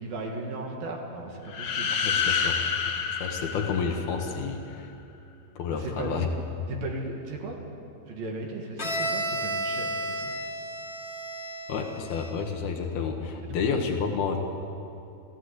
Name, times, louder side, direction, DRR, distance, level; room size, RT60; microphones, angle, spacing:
voice 1, 0.0-2.0 5.8-6.3 6.7-7.6 8.1-10.3 13.5-13.6, right 2 dB, 65° right, 1 dB, 3.6 m, -36 dB
sound 1, 1.5-4.4, left 6 dB, 60° left, 2.5 m, -28 dB
voice 2, 2.0-2.6 3.2-4.9 5.6-6.3 11.7-14.4, left 5 dB, 75° left, 3 dB, 3.4 m, -30 dB
Bowed string instrument, 8.8-12.5, right 1 dB, 15° left, 2.8 m, -32 dB
28.5 x 15.0 x 8.2 m, 2.7 s
omnidirectional pair, 4.6 m